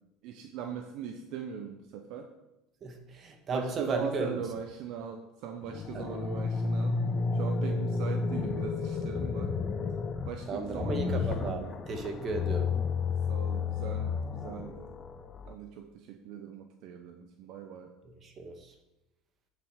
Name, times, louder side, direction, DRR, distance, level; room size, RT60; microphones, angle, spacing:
voice 1, 0.2-2.3 3.5-7.0 7.3-9.5 10.3-11.7 13.3-14.9 15.5-17.9, right 7 dB, 65° right, 5 dB, 0.9 m, -40 dB
voice 2, 2.8-4.4 5.9-6.2 10.5-12.7 18.0-18.7, right 3 dB, 40° right, 5 dB, 1.9 m, -35 dB
sound 1, 5.6-15.5, left 4 dB, 35° left, 0.9 m, -32 dB
9.0 x 7.7 x 5.2 m, 0.95 s
hypercardioid pair, 85°, 0 cm